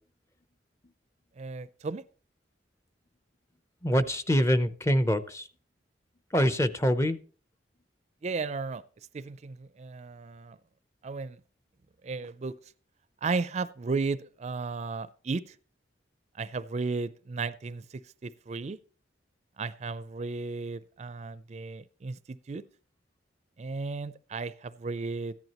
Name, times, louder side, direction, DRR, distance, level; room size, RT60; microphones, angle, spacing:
voice 1, 1.4-2.0 8.2-8.8 9.1-10.6 11.0-11.4 12.0-12.6 13.2-15.6 16.3-18.8 19.6-22.6 23.6-25.3, right 4 dB, 40° right, 15 dB, 0.4 m, -34 dB
voice 2, 3.8-5.5 6.3-7.2, equal, 15° left, 12 dB, 0.6 m, -25 dB
14.5 x 10.5 x 3.0 m, 0.39 s
head